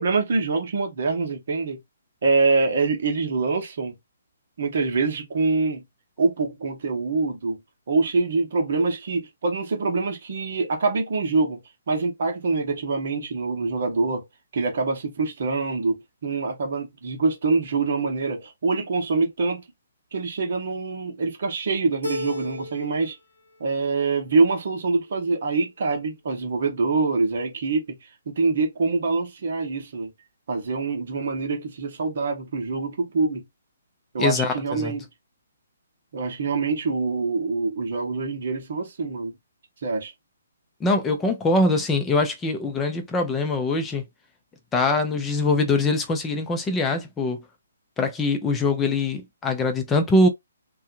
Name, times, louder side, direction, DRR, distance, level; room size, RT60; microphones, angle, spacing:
voice 1, 0.0-1.8 2.2-3.9 4.6-5.8 6.2-7.6 7.9-11.6 11.9-14.2 14.5-19.6 20.1-23.2 23.6-28.0 28.3-30.1 30.5-33.4 34.1-35.1 36.1-39.3 39.8-40.1, right 4 dB, 50° right, 0.9 m, -25 dB
Keyboard (musical), 22.0-23.1 23.5-24.2, left 1 dB, 80° left, 1.0 m, -34 dB
voice 2, 34.2-34.9 40.8-44.0 44.7-47.4 48.0-50.3, left 2 dB, 10° left, 0.6 m, -23 dB
2.7 x 2.2 x 2.4 m
figure-of-eight pair, 130°, 0 cm